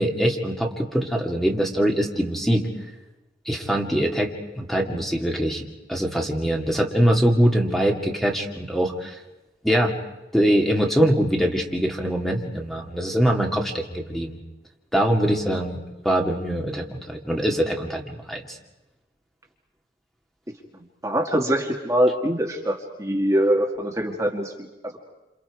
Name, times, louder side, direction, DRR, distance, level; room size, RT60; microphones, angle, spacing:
voice 1, 0.0-2.7 3.5-5.6 5.9-9.2 9.6-10.0 10.3-14.4 14.9-18.6, equal, ahead, 1 dB, 2.2 m, -23 dB
voice 2, 20.7-24.5, equal, 15° right, 1 dB, 2.0 m, -23 dB
29.0 x 28.0 x 4.8 m, 1.0 s
head